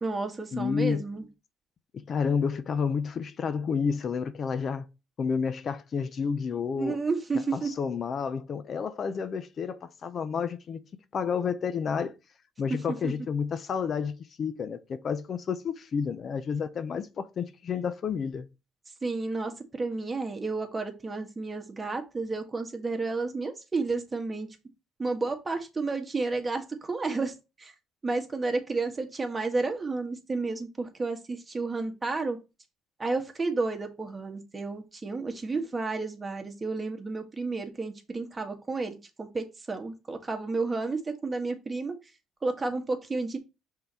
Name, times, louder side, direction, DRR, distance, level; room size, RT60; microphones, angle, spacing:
voice 1, 0.0-1.3 6.8-7.7 12.7-13.1 19.0-24.5 25.0-27.7 28.0-32.4 33.0-42.0 42.4-43.4, right 3 dB, 20° right, 1.6 m, -31 dB
voice 2, 0.5-1.0 2.1-4.9 5.2-7.0 7.5-10.8 11.1-12.1 12.6-18.5, left 6 dB, 50° left, 0.6 m, -30 dB
5.6 x 3.9 x 4.3 m
supercardioid pair, 85°, 0 cm